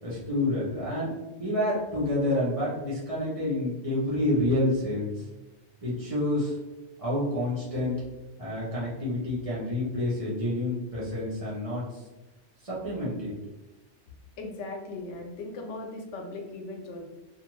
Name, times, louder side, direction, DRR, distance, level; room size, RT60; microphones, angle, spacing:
voice 1, 0.0-1.1 1.4-5.3 5.8-6.6 7.0-7.9 8.4-12.0 12.6-13.3, left 1 dB, 35° right, -9 dB, 0.9 m, -28 dB
voice 2, 14.4-17.0, left 2 dB, 85° left, 2 dB, 0.9 m, -38 dB
2.5 x 2.5 x 3.0 m, 1.1 s
omnidirectional pair, 1.2 m